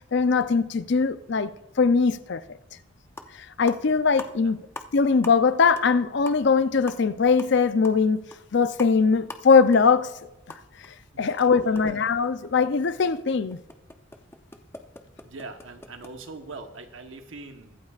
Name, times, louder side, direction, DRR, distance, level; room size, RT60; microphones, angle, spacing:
voice 1, 0.1-1.5 1.8-2.4 3.6-4.6 4.9-8.2 8.5-10.1 11.2-13.6, left 5 dB, 60° left, 0.5 m, -21 dB
sound 1, 2.8-2.9 3.1-3.4 3.7-4.9 5.2-5.5 5.8-5.9 6.2-10.9 11.2-16.1, left 2 dB, 15° left, 0.6 m, -44 dB
voice 2, 11.1-11.8 15.2-17.8, right 3 dB, 80° right, 1.2 m, -42 dB
23.0 x 8.5 x 2.4 m
head